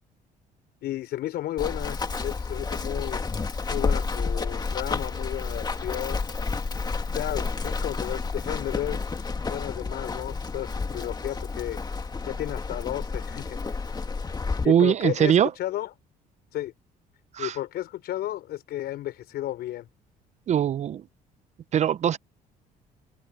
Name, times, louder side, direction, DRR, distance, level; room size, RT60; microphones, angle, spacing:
voice 1, 0.8-3.2 3.7-6.2 7.1-9.1 9.5-11.8 12.3-13.8 14.6-15.9 16.5-16.7 17.4-19.9, left 14 dB, 75° left, 5.4 m, -33 dB
Run, 1.6-14.7, left 4 dB, 25° left, 2.0 m, -30 dB
voice 2, 14.7-15.5 17.3-17.6 20.5-21.0 21.7-22.2, right 9 dB, 45° right, 0.5 m, -21 dB
cardioid pair, 110°, 17 cm